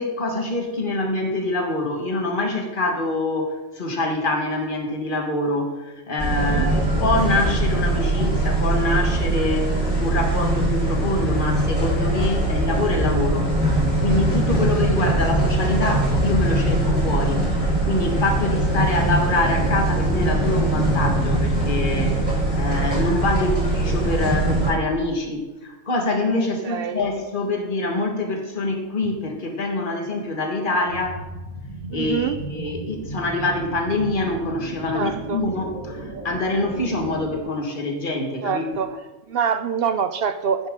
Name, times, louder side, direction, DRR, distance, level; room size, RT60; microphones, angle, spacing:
voice 1, 0.0-13.5 14.0-17.4 17.8-22.3 22.5-31.2 31.9-38.7, left 2 dB, 40° left, 3 dB, 1.6 m, -25 dB
sound 1, 6.2-24.7, right 1 dB, 5° right, 3.9 m, -21 dB
voice 2, 6.4-6.7 15.0-15.2 23.3-23.4 26.6-27.1 31.9-32.4 34.9-35.4 38.4-39.0 39.3-40.7, right 7 dB, 65° right, 10 dB, 0.6 m, -25 dB
sound 2, 30.8-37.4, right 2 dB, 85° right, 2.1 m, -35 dB
10.5 x 9.8 x 3.7 m, 1.1 s
omnidirectional pair, 1.4 m